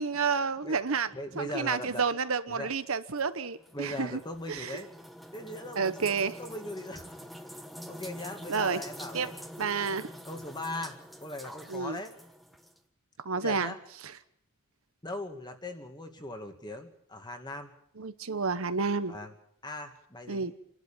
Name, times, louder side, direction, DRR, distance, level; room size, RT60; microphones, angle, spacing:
voice 1, 0.0-1.1 1.4-4.2 4.5-4.8 5.8-6.3 8.5-8.8 9.1-9.3 9.6-10.1 11.7-12.0 13.2-13.7 18.0-19.1 20.3-20.5, right 5 dB, 70° right, 1.0 m, -30 dB
voice 2, 1.1-2.1 2.5-2.7 3.7-4.9 5.3-7.3 7.9-9.3 10.2-12.1 13.4-13.8 15.0-17.7 19.1-19.3 19.6-20.5, left 1 dB, 20° left, 2.2 m, -40 dB
sound 1, 3.2-12.8, equal, ahead, 1.3 m, -46 dB
27.5 x 12.0 x 9.1 m
head